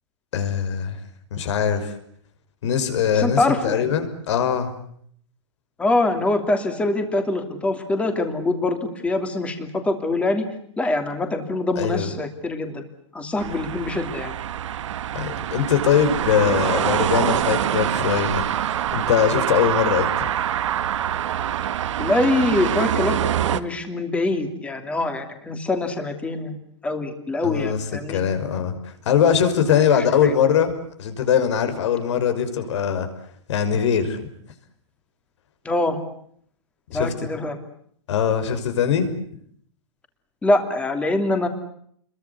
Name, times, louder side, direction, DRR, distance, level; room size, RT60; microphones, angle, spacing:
voice 1, 0.3-1.0 1.3-1.9 2.6-4.7 11.8-12.1 15.1-18.4 18.9-20.3 27.4-27.8 28.1-30.7 31.0-33.1 33.5-34.2 36.9-37.1 38.1-39.1, left 8 dB, 70° left, 9 dB, 5.9 m, -21 dB
voice 2, 3.1-3.9 5.8-10.5 10.8-12.8 13.1-14.3 22.0-23.2 23.5-26.6 26.8-28.2 29.9-30.3 35.6-36.0 36.9-37.6 40.4-41.5, left 2 dB, 10° left, 6 dB, 2.9 m, -24 dB
sound 1, 13.4-23.6, right 10 dB, 80° right, 1.8 m, -25 dB
29.5 x 23.0 x 8.1 m, 0.65 s
supercardioid pair, 165°, 16 cm